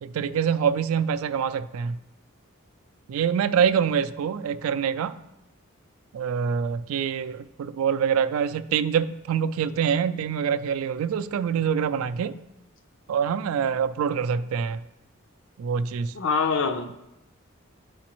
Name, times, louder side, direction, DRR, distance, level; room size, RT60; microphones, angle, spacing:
voice 1, 0.0-2.0 3.1-5.2 6.1-12.4 13.1-14.8 15.6-16.1, right 7 dB, 85° right, 12 dB, 0.3 m, -25 dB
voice 2, 16.1-17.0, left 5 dB, 60° left, 7 dB, 0.5 m, -25 dB
8.4 x 5.0 x 3.0 m, 0.90 s
head